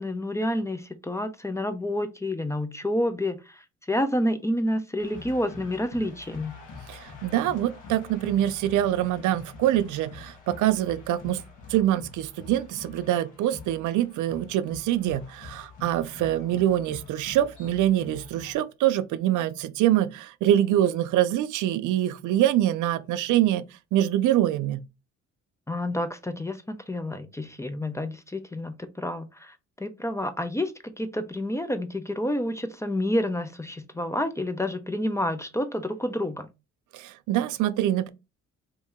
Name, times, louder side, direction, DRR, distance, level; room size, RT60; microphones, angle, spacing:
voice 1, 0.0-6.6 25.7-36.5, left 1 dB, 10° left, 0.4 m, -29 dB
sound 1, 5.0-18.5, left 5 dB, 80° left, 1.4 m, -45 dB
voice 2, 6.9-11.4 11.7-23.6 23.9-24.8 36.9-38.1, right 12 dB, 80° right, 0.5 m, -24 dB
3.1 x 2.7 x 3.5 m
cardioid pair, 90°, 30 cm